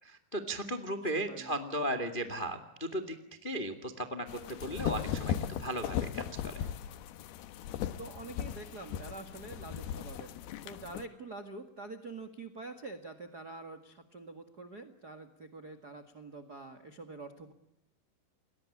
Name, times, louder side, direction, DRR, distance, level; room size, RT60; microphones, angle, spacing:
voice 1, 0.0-3.2 3.4-6.7, right 1 dB, 35° left, 10 dB, 0.8 m, -36 dB
voice 2, 1.3-1.6 8.0-10.3 10.6-17.5, right 3 dB, 55° right, 11 dB, 1.0 m, -46 dB
sound 1, 4.3-11.0, left 9 dB, 70° left, 2.9 m, -37 dB
30.0 x 21.5 x 8.6 m, 0.83 s
omnidirectional pair, 5.2 m